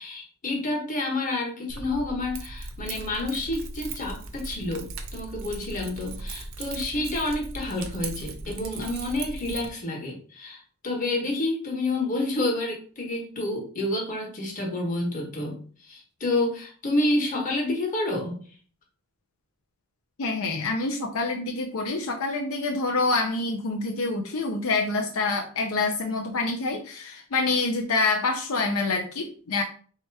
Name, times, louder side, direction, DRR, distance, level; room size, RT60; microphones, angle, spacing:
voice 1, 0.0-18.4, left 2 dB, 35° left, 0 dB, 1.2 m, -29 dB
Keys jangling, 1.7-9.7, right 3 dB, 60° right, 0.6 m, -38 dB
voice 2, 20.2-29.6, left 3 dB, 70° left, 2 dB, 0.6 m, -26 dB
3.4 x 2.9 x 4.6 m, 0.42 s
head